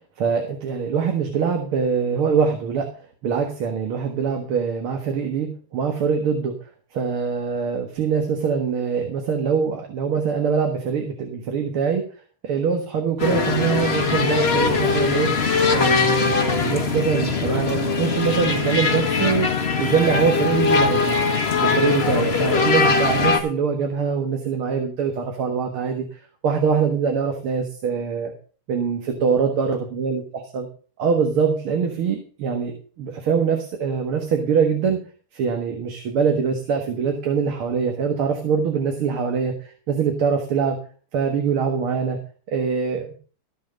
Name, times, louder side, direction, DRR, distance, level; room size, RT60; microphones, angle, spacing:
voice 1, 0.2-2.9 3.2-6.5 6.9-12.0 12.4-15.3 15.7-19.5 19.8-21.2 21.6-28.3 28.7-30.7 31.0-35.0 35.3-40.8 41.1-42.2 42.5-43.1, right 6 dB, 75° right, 4 dB, 2.4 m, -23 dB
sound 1, 13.2-23.4, left 4 dB, 30° left, 1.5 m, -21 dB
14.0 x 7.0 x 5.3 m, 0.40 s
omnidirectional pair, 2.4 m